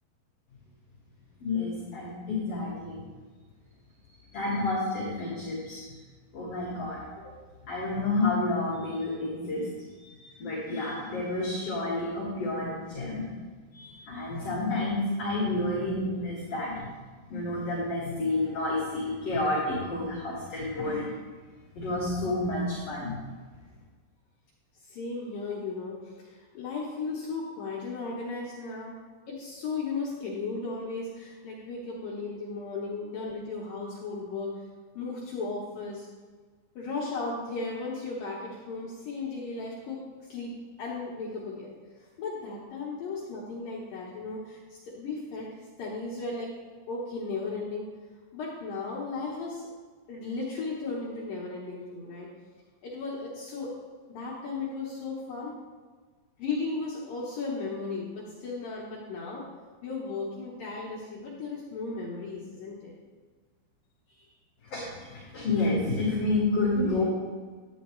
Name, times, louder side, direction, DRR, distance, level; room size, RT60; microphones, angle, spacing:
voice 1, 1.4-3.0 4.3-5.8 6.3-7.0 7.7-9.6 10.0-10.1 10.4-13.2 13.7-16.9 17.3-21.1 21.7-23.2 64.7-67.0, left 2 dB, 45° left, -6 dB, 2.1 m, -29 dB
voice 2, 24.8-28.9 29.3-34.6 35.0-36.1 36.8-40.0 40.3-45.5 45.8-46.5 46.9-47.9 48.3-49.7 50.1-52.3 52.8-53.7 54.1-55.6 56.4-59.5 59.8-62.9 64.1-64.3, left 3 dB, 70° left, -4 dB, 2.2 m, -35 dB
11.5 x 9.2 x 3.1 m, 1.4 s
omnidirectional pair, 5.5 m